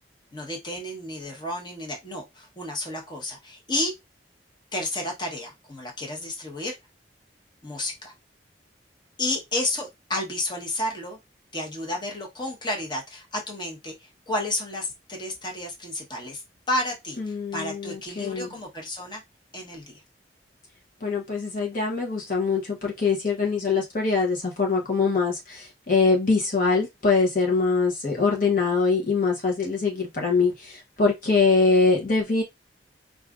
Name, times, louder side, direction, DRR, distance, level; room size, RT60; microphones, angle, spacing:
voice 1, 0.3-3.9 4.7-6.7 7.6-8.1 9.2-11.2 11.5-19.2 19.5-20.0, left 1 dB, 25° left, 1.1 m, -31 dB
voice 2, 17.2-18.5 21.0-32.4, left 4 dB, 50° left, 0.9 m, -23 dB
4.7 x 2.5 x 2.4 m
head